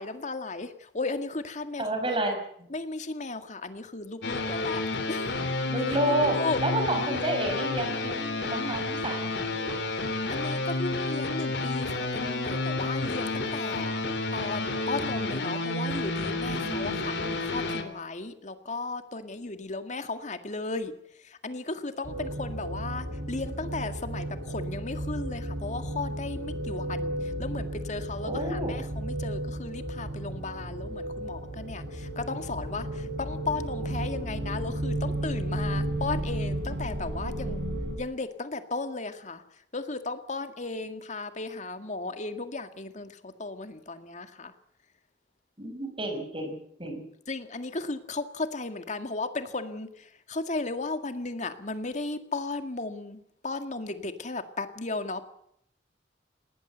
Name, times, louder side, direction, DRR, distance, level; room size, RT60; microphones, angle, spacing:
voice 1, 0.0-1.9 2.7-5.3 6.3-6.6 10.3-20.9 21.2-37.6 38.0-39.4 39.7-44.5 47.3-55.2, left 3 dB, 45° left, 8 dB, 2.0 m, -35 dB
voice 2, 1.8-2.7 5.7-9.9 16.6-17.0 28.2-28.7 45.6-47.0, right 1 dB, 30° right, 5 dB, 5.9 m, -30 dB
sound 1, 4.2-17.8, left 2 dB, 75° left, 3.1 m, -30 dB
sound 2, 22.0-38.0, right 1 dB, 80° right, 4.8 m, -33 dB
20.0 x 18.5 x 8.1 m, 0.71 s
head